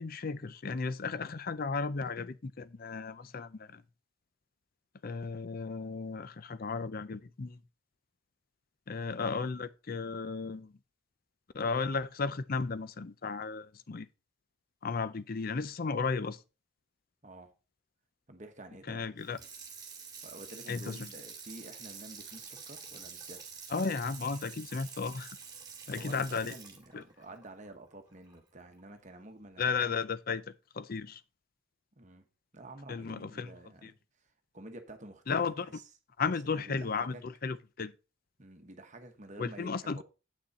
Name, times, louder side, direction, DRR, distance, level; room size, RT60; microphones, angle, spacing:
voice 1, 0.0-3.8 5.0-7.6 8.9-10.7 11.5-14.1 14.8-16.4 18.9-19.4 20.7-21.0 23.7-25.3 25.9-26.5 26.9-27.0 29.6-30.4 30.7-31.2 32.9-33.5 33.8-33.9 35.3-35.7 36.2-37.9 39.4-40.0, left 4 dB, 45° left, 0.5 m, -34 dB
voice 2, 17.2-17.5 18.3-19.1 20.2-23.4 26.0-29.8 32.0-32.3 32.5-35.9 36.3-37.2 38.4-40.0, right 1 dB, 35° right, 1.2 m, -50 dB
Water tap faucet / Sink (filling or washing), 19.2-28.4 28.8-28.9, right 6 dB, 20° right, 2.2 m, -48 dB
8.4 x 6.3 x 4.2 m
head